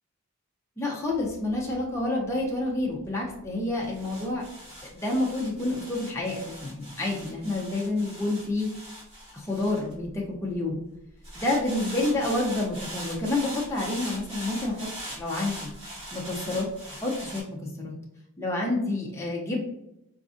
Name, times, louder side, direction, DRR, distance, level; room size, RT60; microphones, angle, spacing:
voice 1, 0.8-4.4 4.9-8.7 9.3-10.8 11.4-15.7 16.1-17.9 18.4-19.6, left 2 dB, 10° left, -3 dB, 0.4 m, -29 dB
sound 1, 1.1-10.5 11.2-17.4, equal, 30° right, 1.2 m, -41 dB
4.1 x 2.5 x 2.4 m, 0.83 s
head